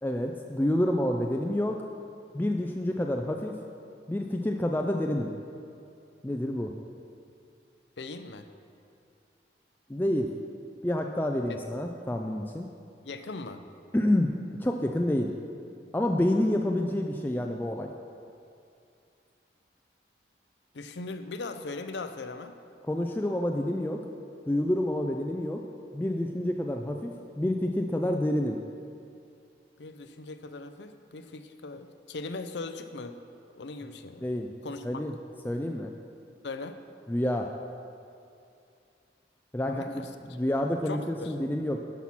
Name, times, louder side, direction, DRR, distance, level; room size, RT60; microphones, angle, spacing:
voice 1, 0.0-1.8 2.3-3.6 4.1-5.3 6.2-6.7 9.9-10.3 10.8-12.7 13.9-15.3 15.9-17.9 22.8-24.1 24.5-25.6 25.9-28.6 34.2-34.5 34.8-35.1 35.4-35.9 37.1-37.5 39.5-41.8, left 1 dB, 10° left, 2 dB, 0.3 m, -28 dB
voice 2, 8.0-8.5 11.5-11.6 13.0-13.6 20.7-22.6 29.8-33.2 33.6-34.2 34.6-35.0 36.4-36.7 39.7-40.1 40.9-41.3, left 3 dB, 80° left, 9 dB, 0.6 m, -39 dB
12.0 x 5.7 x 5.9 m, 2.5 s
head